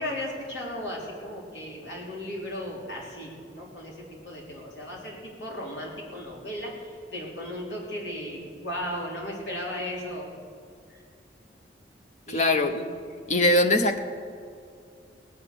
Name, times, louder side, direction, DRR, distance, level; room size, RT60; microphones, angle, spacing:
voice 1, 0.0-10.3 10.9-11.0 12.3-12.6, left 1 dB, 80° left, -3 dB, 3.7 m, -36 dB
voice 2, 12.3-12.9 13.3-14.0, left 1 dB, 40° left, 7 dB, 0.9 m, -22 dB
18.5 x 9.0 x 6.8 m, 2.3 s
head